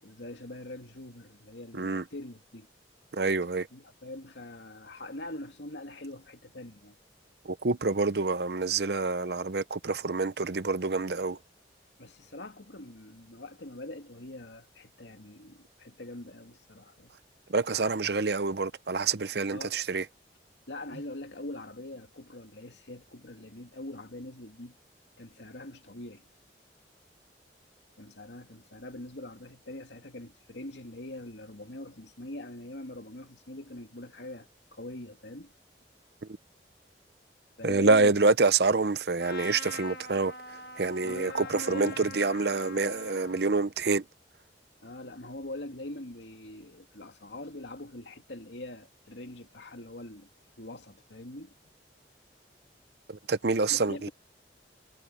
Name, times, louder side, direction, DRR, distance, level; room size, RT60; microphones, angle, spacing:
voice 1, 0.0-2.7 3.7-6.9 12.0-17.1 19.5-19.8 20.7-24.8 25.2-26.3 28.0-35.5 37.6-38.2 41.0-42.2 44.8-50.3 50.6-51.7 53.7-54.1, left 1 dB, 75° left, 2.6 m, -43 dB
voice 2, 1.7-2.0 3.1-3.7 7.4-11.4 17.5-20.1 36.2-36.4 37.6-44.0 53.1-54.1, right 3 dB, 60° right, 0.8 m, -27 dB
Trumpet, 39.2-43.5, left 3 dB, 55° left, 1.6 m, -44 dB
head